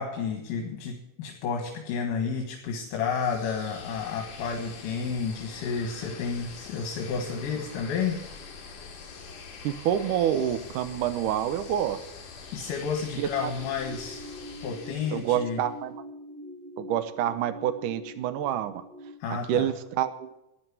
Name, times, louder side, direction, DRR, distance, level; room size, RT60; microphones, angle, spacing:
voice 1, 0.0-8.2 12.5-14.2 14.6-15.6 19.2-19.7, left 6 dB, 80° left, 3 dB, 3.1 m, -31 dB
sound 1, 2.9-15.7, left 5 dB, 55° left, 3.3 m, -45 dB
voice 2, 9.6-12.0 13.2-13.5 15.1-16.0 16.8-18.8 19.5-20.3, right 10 dB, 75° right, 12 dB, 2.3 m, -27 dB
sound 2, 13.2-19.1, left 1 dB, 35° right, 1.0 m, -43 dB
13.5 x 9.5 x 8.2 m, 0.89 s
omnidirectional pair, 3.9 m